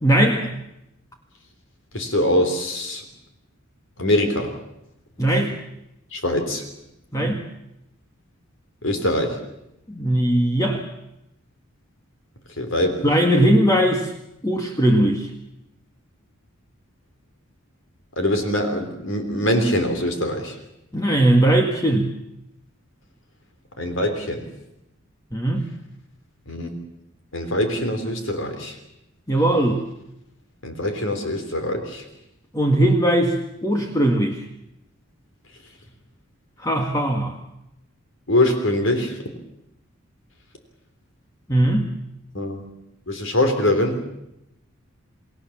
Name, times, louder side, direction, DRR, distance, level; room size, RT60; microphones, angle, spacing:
voice 1, 0.0-0.6 5.2-5.6 7.1-7.4 9.9-10.9 13.0-14.1 14.4-15.3 20.9-22.1 25.3-25.7 29.3-29.8 32.5-33.4 33.6-34.5 36.6-37.3 41.5-41.9, right 1 dB, 15° left, 2 dB, 1.8 m, -19 dB
voice 2, 1.9-3.0 4.0-4.5 6.1-6.6 8.8-9.4 12.6-13.0 18.2-20.6 23.8-24.5 26.5-26.8 27.3-28.8 30.6-32.0 38.3-39.2 42.3-42.6 43.1-44.0, left 1 dB, 65° left, 6 dB, 3.8 m, -23 dB
29.0 x 20.0 x 7.4 m, 0.85 s
head